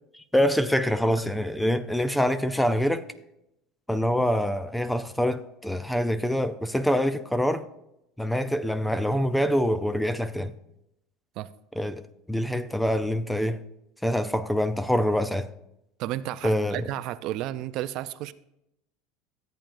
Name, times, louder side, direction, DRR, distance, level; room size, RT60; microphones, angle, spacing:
voice 1, 0.1-3.1 3.9-7.7 8.2-10.5 11.8-12.0 12.3-13.6 14.0-15.5 16.4-16.8, equal, 5° left, 0.5 m, -25 dB
voice 2, 16.0-18.3, right 14 dB, 55° right, 0.4 m, -32 dB
13.5 x 8.9 x 2.6 m
supercardioid pair, 130°, 0 cm